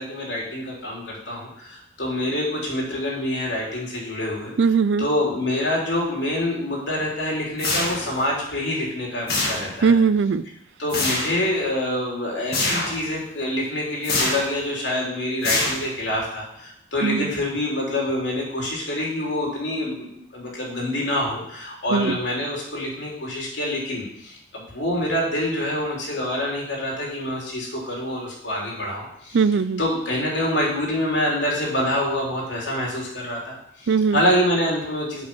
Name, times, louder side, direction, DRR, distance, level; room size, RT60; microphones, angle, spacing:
voice 1, 0.0-4.5 5.0-10.0 10.8-29.4 29.8-35.3, left 1 dB, 85° left, -3 dB, 3.3 m, -26 dB
voice 2, 4.6-5.1 9.8-10.4 17.0-17.3 21.9-22.2 29.3-29.8 33.9-34.2, right 5 dB, 90° right, 15 dB, 0.4 m, -19 dB
sound 1, 7.6-8.3 9.3-9.9 10.9-11.4 12.5-13.0 14.0-14.6 15.4-16.1, left 2 dB, 55° left, 2.2 m, -25 dB
8.1 x 5.4 x 6.1 m, 0.73 s
head